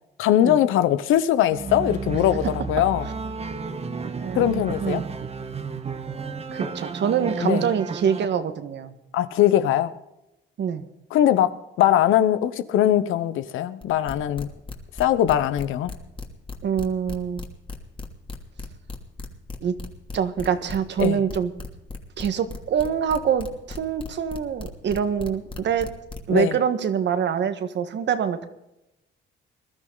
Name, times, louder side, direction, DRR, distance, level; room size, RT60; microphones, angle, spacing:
voice 1, 0.2-3.1 4.3-5.0 7.4-7.6 9.1-9.9 11.1-14.5 15.0-15.9 21.0-21.2 26.3-26.6, left 11 dB, 85° left, 1.0 m, -21 dB
sound 1, 1.5-8.3, right 4 dB, 30° right, 1.5 m, -32 dB
voice 2, 4.0-5.1 6.5-8.9 10.6-10.9 16.6-17.4 19.6-19.7 20.1-21.5 22.2-25.9 26.3-28.5, right 7 dB, 65° right, 1.6 m, -25 dB
sound 2, 13.8-26.4, left 3 dB, 25° left, 2.8 m, -36 dB
21.5 x 12.5 x 4.0 m
cardioid pair, 90°, 20 cm